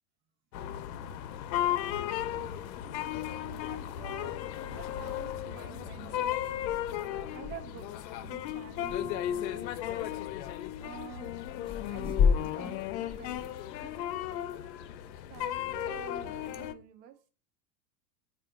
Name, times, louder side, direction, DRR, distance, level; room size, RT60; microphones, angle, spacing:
sound 1, 0.5-16.7, left 11 dB, 85° left, 0.5 m, -35 dB
voice 1, 2.8-4.4 4.7-9.7 10.8-11.4 11.9-13.5 14.5-14.8 15.3-17.2, right 10 dB, 60° right, 6 dB, 0.6 m, -49 dB
sound 2, 7.3-15.7, left 6 dB, 15° left, 0.3 m, -36 dB
3.7 x 2.4 x 3.4 m, 0.38 s
supercardioid pair, 135°, 50 cm